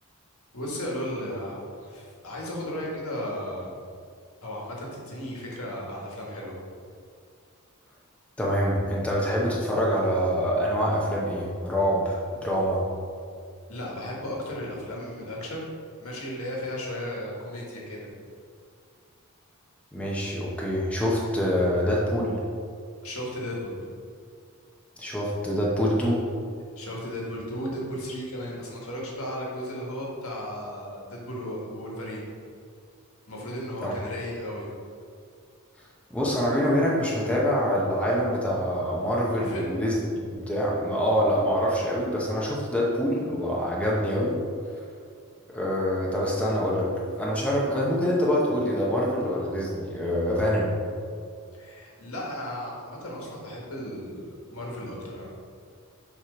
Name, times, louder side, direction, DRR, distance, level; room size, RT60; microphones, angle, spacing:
voice 1, 0.5-3.8 4.4-6.6 13.7-15.7 16.0-18.1 23.0-23.8 26.7-32.3 33.3-34.7 39.3-39.7 51.6-55.3, equal, 70° left, -3 dB, 1.6 m, -35 dB
voice 2, 8.4-12.9 19.9-22.4 25.0-26.2 33.8-33.9 36.1-39.9 40.3-44.4 45.5-50.7, equal, 5° left, -5 dB, 0.8 m, -25 dB
7.2 x 3.1 x 5.0 m, 2.3 s
head